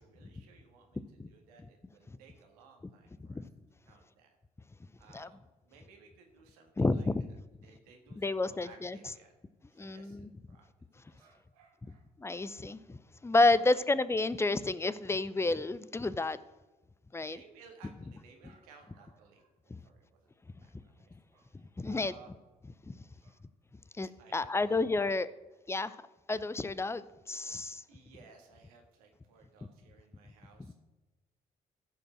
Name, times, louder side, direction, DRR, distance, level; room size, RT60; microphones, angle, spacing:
voice 1, 0.0-3.4 3.9-4.3 5.0-7.4 7.6-9.3 9.7-10.7 11.1-12.4 13.5-13.9 17.2-20.3 20.6-22.3 23.1-23.4 24.2-25.2 25.6-25.8 27.9-30.7, right 5 dB, 80° right, 3 dB, 1.7 m, -59 dB
voice 2, 6.8-7.2 8.2-9.0 9.8-10.3 12.2-16.4 17.1-17.4 19.7-19.8 21.8-22.1 22.9-23.0 24.0-25.3 25.7-26.0 26.3-27.8, left 2 dB, 15° left, 16 dB, 0.6 m, -30 dB
14.5 x 5.3 x 6.1 m, 1.1 s
figure-of-eight pair, 45°, 19 cm